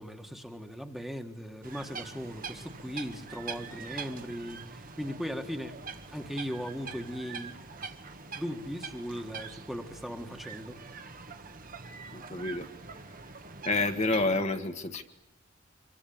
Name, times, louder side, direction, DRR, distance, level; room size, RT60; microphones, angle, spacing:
voice 1, 0.0-5.8 6.1-7.6 8.3-10.8, equal, ahead, 5 dB, 1.7 m, -38 dB
sound 1, 1.6-14.4, right 5 dB, 45° right, 1.6 m, -44 dB
voice 2, 12.1-12.7 13.6-15.0, left 2 dB, 35° left, 5 dB, 1.4 m, -29 dB
26.0 x 24.0 x 8.7 m, 0.90 s
head